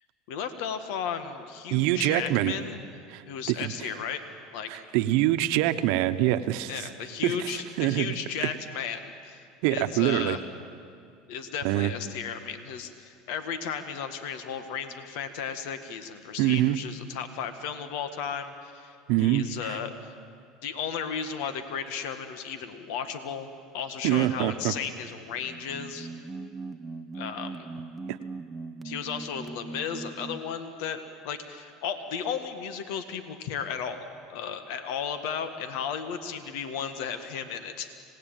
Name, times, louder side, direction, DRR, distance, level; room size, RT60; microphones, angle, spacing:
voice 1, 0.3-2.8 3.3-4.2 4.5-4.8 6.7-9.4 9.7-10.4 11.3-20.1 20.6-26.1 27.1-27.7 28.8-38.0, left 7 dB, 75° left, 9 dB, 1.6 m, -34 dB
voice 2, 1.7-2.5 3.1-3.2 3.5-3.7 4.7-6.8 7.2-7.3 7.8-8.1 8.4-8.5 9.6-10.4 11.6-11.9 16.4-16.8 19.1-19.5 24.0-24.7, right 15 dB, 70° right, 10 dB, 1.1 m, -24 dB
sound 1, 25.3-30.6, right 3 dB, 15° right, 0.9 m, -40 dB
26.0 x 18.5 x 9.1 m, 2.4 s
supercardioid pair, 110°, 0 cm